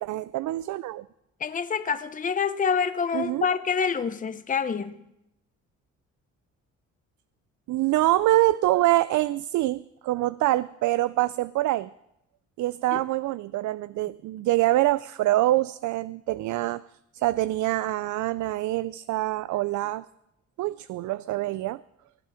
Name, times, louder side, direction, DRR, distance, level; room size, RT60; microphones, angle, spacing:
voice 1, 0.0-1.0 3.1-3.5 7.7-11.9 12.6-16.8 17.1-20.0 20.6-21.8, right 16 dB, 75° right, 0.5 m, -25 dB
voice 2, 1.4-5.0 12.9-13.0, left 6 dB, 25° left, 0.8 m, -27 dB
19.5 x 12.0 x 5.0 m
cardioid pair, 90°, 30 cm